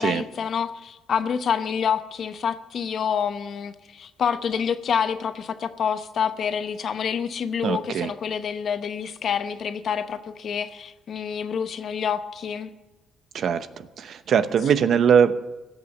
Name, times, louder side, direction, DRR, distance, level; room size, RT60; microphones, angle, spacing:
voice 1, 0.0-12.7, left 7 dB, 60° left, 0.9 m, -27 dB
voice 2, 7.6-8.1 13.3-15.4, right 7 dB, 65° right, 0.8 m, -21 dB
16.5 x 6.9 x 8.7 m
cardioid pair, 90°, 0 cm